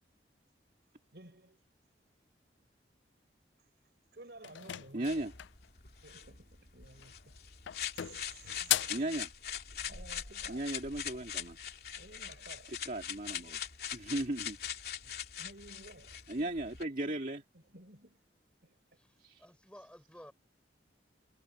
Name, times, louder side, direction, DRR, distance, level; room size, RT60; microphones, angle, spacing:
voice 1, 1.1-1.6 4.1-5.3 6.0-7.4 7.9-9.0 9.8-10.8 12.0-12.8 15.0-16.5 17.5-18.3 18.6-18.8, right 2 dB, 65° right, 4.3 m, -54 dB
sound 1, 4.4-5.7 6.9-7.3 7.7-9.1, left 14 dB, 85° left, 0.4 m, -36 dB
voice 2, 4.9-5.3 8.9-9.3 10.5-11.6 12.9-13.6 13.9-14.6 16.3-17.4 19.2-19.4, right 1 dB, 45° right, 2.1 m, -36 dB
sound 2, 5.0-16.8, left 9 dB, 55° left, 3.1 m, -42 dB
voice 3, 18.9-20.3, equal, 5° left, 4.5 m, -54 dB
head